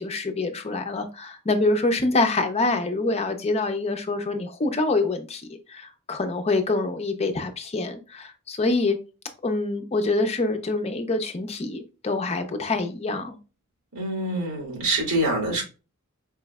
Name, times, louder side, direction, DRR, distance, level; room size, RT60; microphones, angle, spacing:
voice 1, 0.0-9.0 9.4-13.4, left 2 dB, 30° left, 0.5 m, -25 dB
voice 2, 13.9-15.6, right 1 dB, 70° right, 2.0 m, -25 dB
4.8 x 3.1 x 2.3 m
head